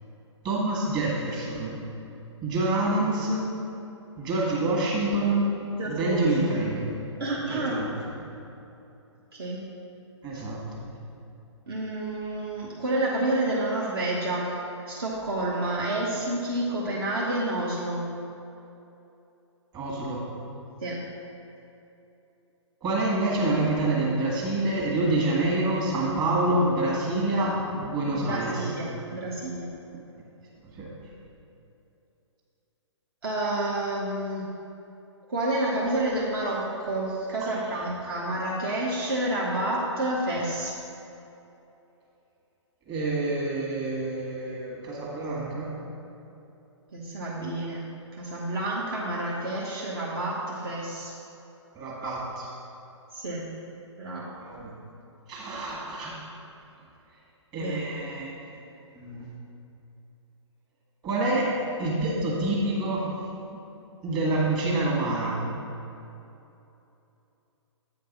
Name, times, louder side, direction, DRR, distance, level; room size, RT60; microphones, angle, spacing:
voice 1, 0.4-1.8 2.4-3.5 4.2-5.5 5.8-7.0 7.4-7.8 10.2-10.9 19.7-20.2 22.8-28.7 30.6-30.9 42.9-45.7 51.7-52.5 54.4-54.7 55.3-56.1 57.5-58.3 58.9-59.3 61.0-61.5 61.8-63.1 64.0-65.4, right 2 dB, 25° right, -4 dB, 1.9 m, -27 dB
voice 2, 5.8-6.7 7.2-7.8 9.3-9.6 10.3-10.4 11.7-14.5 14.9-18.0 20.8-21.0 28.1-29.7 33.2-34.5 35.3-40.7 46.9-47.9 48.1-51.1 52.0-52.1 53.1-53.5 54.0-54.3 57.6-58.0, right 1 dB, 50° right, -4 dB, 1.2 m, -29 dB
8.1 x 5.2 x 5.3 m, 2.9 s
figure-of-eight pair, 130°, 16 cm